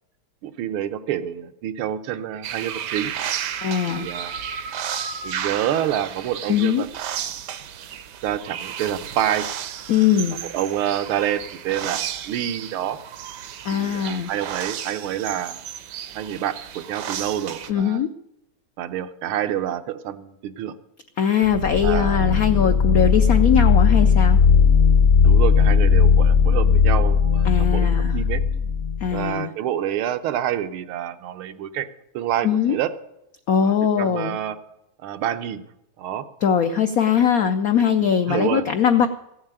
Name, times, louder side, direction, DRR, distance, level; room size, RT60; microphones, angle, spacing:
voice 1, 0.4-3.1 3.9-4.3 5.2-6.9 7.2-7.3 8.2-9.6 10.5-13.0 13.7-15.6 16.1-18.0 18.8-20.7 21.8-22.2 25.2-28.4 29.1-31.9 32.1-32.9 33.6-34.6 35.0-35.7 36.0-36.2 38.3-38.6, right 11 dB, 80° right, 10 dB, 1.7 m, -27 dB
sound 1, 2.4-17.7, right 9 dB, 65° right, 1.2 m, -33 dB
voice 2, 3.6-4.1 6.5-6.8 9.9-10.4 13.6-14.3 17.7-18.1 21.2-24.4 27.4-28.1 29.0-29.5 32.4-32.8 33.5-34.4 36.4-39.1, left 8 dB, 80° left, 9 dB, 0.8 m, -21 dB
sound 2, 21.4-29.2, left 6 dB, 50° left, 0.8 m, -17 dB
15.0 x 7.2 x 8.8 m, 0.85 s
omnidirectional pair, 2.3 m